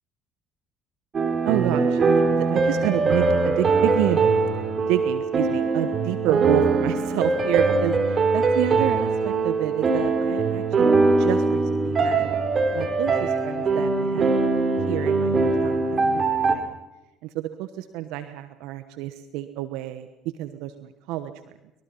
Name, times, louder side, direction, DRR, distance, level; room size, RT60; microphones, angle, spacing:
sound 1, 1.1-16.6, right 3 dB, 40° right, 3.7 m, -22 dB
voice 1, 1.4-4.2 4.9-10.9 11.2-12.3 12.7-14.4 14.9-16.6 17.2-20.1 20.4-21.3, right 14 dB, 70° right, 10 dB, 1.2 m, -29 dB
24.0 x 22.0 x 5.6 m, 0.94 s
hypercardioid pair, 60°, 0 cm